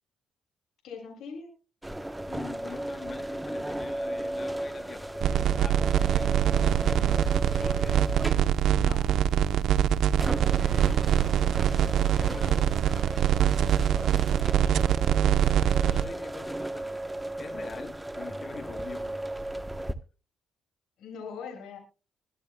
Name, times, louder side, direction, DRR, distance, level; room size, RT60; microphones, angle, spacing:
voice 1, 0.8-1.5 8.8-9.0 9.5-9.6 14.6-14.8 21.0-21.8, left 5 dB, 80° left, 7.6 m, -41 dB
sound 1, 1.8-20.0, right 1 dB, 10° right, 1.1 m, -36 dB
voice 2, 2.3-8.1 10.6-11.8 12.2-12.8 15.7-17.0 17.4-19.3, left 4 dB, 45° left, 2.3 m, -44 dB
sound 2, 5.2-16.0, right 9 dB, 75° right, 0.8 m, -24 dB
24.0 x 11.0 x 2.3 m
cardioid pair, 90°, 0 cm